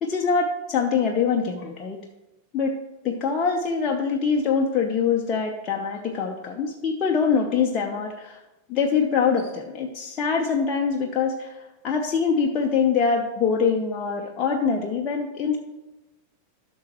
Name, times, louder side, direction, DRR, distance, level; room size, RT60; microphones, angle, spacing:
voice 1, 0.0-2.0 2.5-2.8 3.0-8.4 8.7-15.6, left 5 dB, 30° left, 1 dB, 0.8 m, -24 dB
12.0 x 6.2 x 3.0 m, 1.0 s
figure-of-eight pair, 90°, 0 cm